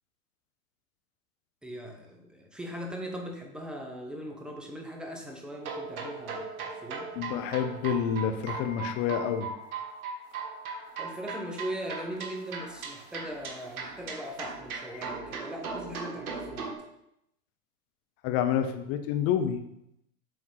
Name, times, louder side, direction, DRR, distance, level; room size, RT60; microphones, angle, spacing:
voice 1, 1.6-7.1 11.0-16.7, equal, ahead, 2 dB, 0.7 m, -39 dB
sound 1, 5.6-16.7, right 4 dB, 65° right, 1.5 m, -38 dB
voice 2, 7.2-9.5 14.9-15.1 18.2-19.6, left 8 dB, 30° left, 8 dB, 0.7 m, -28 dB
7.8 x 3.5 x 3.9 m, 0.79 s
hypercardioid pair, 115°, 47 cm